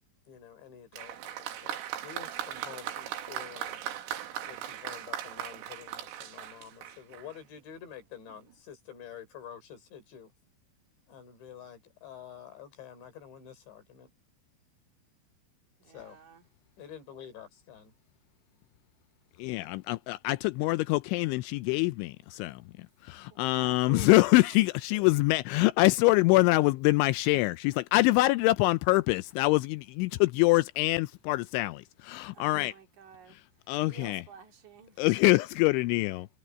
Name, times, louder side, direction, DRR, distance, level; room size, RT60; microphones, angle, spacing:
voice 1, 0.3-3.9 4.4-10.3 11.1-14.1 15.9-16.2 16.8-17.9, left 8 dB, 65° left, 6.3 m, -48 dB
Applause, 0.9-7.4 8.3-8.4, right 10 dB, 90° right, 4.7 m, -38 dB
voice 2, 15.8-16.5 23.3-24.2 32.3-33.4 33.9-35.0, right 8 dB, 50° right, 3.0 m, -51 dB
voice 3, 19.4-22.6 23.1-32.7 33.7-34.2 35.0-36.3, left 21 dB, 85° left, 2.8 m, -25 dB
omnidirectional pair, 5.7 m